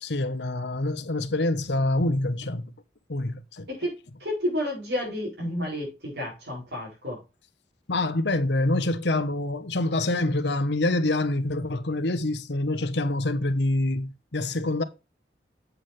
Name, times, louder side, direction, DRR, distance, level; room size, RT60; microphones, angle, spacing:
voice 1, 0.0-2.7 3.1-3.7 7.9-14.8, left 2 dB, 75° left, 1.1 m, -26 dB
voice 2, 3.7-7.2, left 1 dB, 75° right, 5.9 m, -31 dB
8.3 x 7.9 x 3.3 m
head